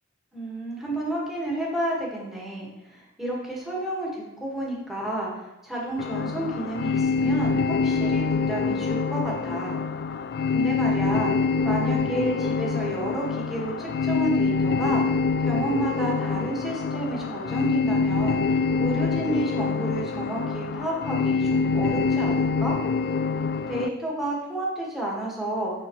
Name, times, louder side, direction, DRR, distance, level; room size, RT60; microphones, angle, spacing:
voice 1, 0.3-5.3 5.6-9.8 10.5-11.3 11.6-15.0 15.4-22.8 23.7-25.7, right 1 dB, ahead, -4 dB, 1.6 m, -31 dB
sound 1, 6.0-23.9, left 4 dB, 50° left, 0.3 m, -25 dB
11.5 x 4.0 x 3.1 m, 0.97 s
head